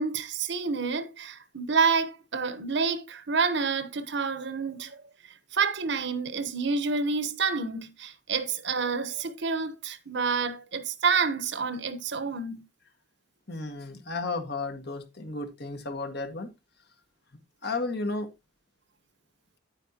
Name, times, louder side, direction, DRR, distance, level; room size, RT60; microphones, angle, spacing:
voice 1, 0.0-5.0 5.5-12.6, right 5 dB, 60° right, 1.1 m, -28 dB
voice 2, 13.5-16.5 17.6-18.3, left 3 dB, 55° left, 1.8 m, -33 dB
9.7 x 9.0 x 2.9 m
head